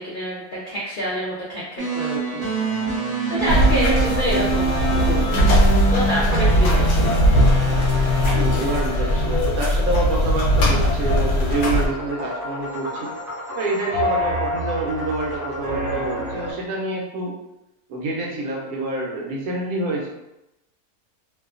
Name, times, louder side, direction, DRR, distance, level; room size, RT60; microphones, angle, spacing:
voice 1, 0.0-5.4 5.7-7.1, equal, 85° left, -6 dB, 0.4 m, -28 dB
sound 1, 1.8-10.0, right 1 dB, 20° right, 0.7 m, -25 dB
sound 2, 3.5-11.9, equal, 65° left, 0.8 m, -19 dB
voice 2, 8.3-13.1 13.5-17.4 17.9-20.1, right 2 dB, 75° right, -2 dB, 1.1 m, -27 dB
sound 3, 11.5-16.5, equal, 55° right, 0.8 m, -28 dB
2.7 x 2.2 x 2.4 m, 0.91 s
omnidirectional pair, 1.6 m